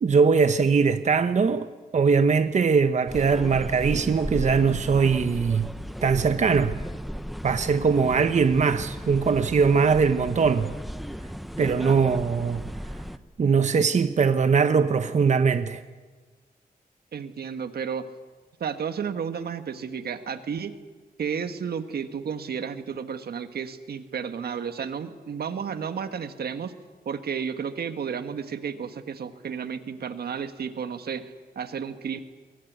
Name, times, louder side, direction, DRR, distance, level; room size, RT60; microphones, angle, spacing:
voice 1, 0.0-1.7 1.9-5.7 6.0-6.8 7.4-10.7 11.6-12.6 13.4-15.8, right 5 dB, 50° right, 1.0 m, -21 dB
sound 1, 3.1-13.2, equal, ahead, 0.9 m, -35 dB
voice 2, 17.1-18.0 18.6-20.7 21.2-26.7 27.0-32.2, right 7 dB, 85° right, 1.6 m, -32 dB
23.0 x 22.0 x 9.5 m
wide cardioid pair, 140°, 16 cm